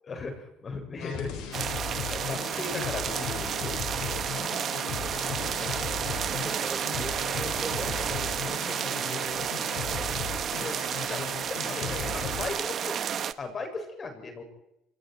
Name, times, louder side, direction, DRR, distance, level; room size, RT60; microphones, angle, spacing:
voice 1, 0.1-1.7 2.0-4.2 5.6-5.8 10.5-10.8 11.1-13.0 13.4-14.4, left 3 dB, 35° left, 5 dB, 7.2 m, -37 dB
sound 1, 1.0-12.5, left 8 dB, 75° left, 7.3 m, -37 dB
sound 2, 1.5-13.3, right 8 dB, 50° right, 1.2 m, -31 dB
voice 2, 6.1-10.0, right 4 dB, 25° right, 7 dB, 3.8 m, -42 dB
29.5 x 23.0 x 4.8 m, 0.85 s
cardioid pair, 100°, 0 cm